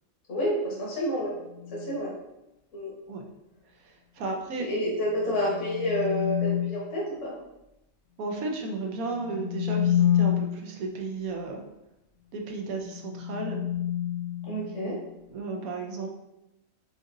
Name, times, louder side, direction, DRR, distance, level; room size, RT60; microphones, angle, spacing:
voice 1, 0.3-1.3 1.7-2.1 2.7-2.9 4.6-7.3 14.5-15.0, equal, 60° left, -5 dB, 1.4 m, -29 dB
sound 1, 1.5-2.0 5.1-7.0 9.1-10.8 12.8-15.1, left 10 dB, 80° left, 0.4 m, -29 dB
voice 2, 3.8-4.6 8.2-11.6 12.3-13.7 15.3-16.1, right 3 dB, 85° right, 2 dB, 1.2 m, -34 dB
4.9 x 3.8 x 2.6 m, 0.91 s
omnidirectional pair, 1.5 m